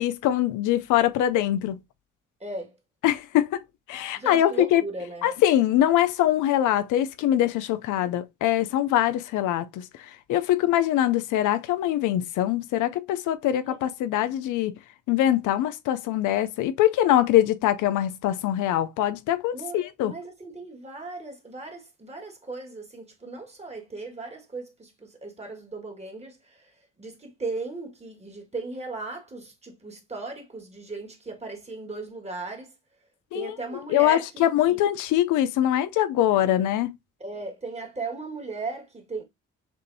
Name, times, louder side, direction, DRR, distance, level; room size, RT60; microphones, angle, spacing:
voice 1, 0.0-1.8 3.0-3.6 3.9-4.8 5.2-9.8 10.3-14.7 15.1-20.1 33.3-33.6 33.9-36.9, left 12 dB, 90° left, 0.6 m, -23 dB
voice 2, 2.4-2.7 4.1-5.3 13.6-13.8 19.5-26.7 27.0-32.7 33.3-34.8 37.2-39.2, right 3 dB, 20° right, 1.8 m, -37 dB
6.9 x 2.6 x 2.7 m
cardioid pair, 90°, 30 cm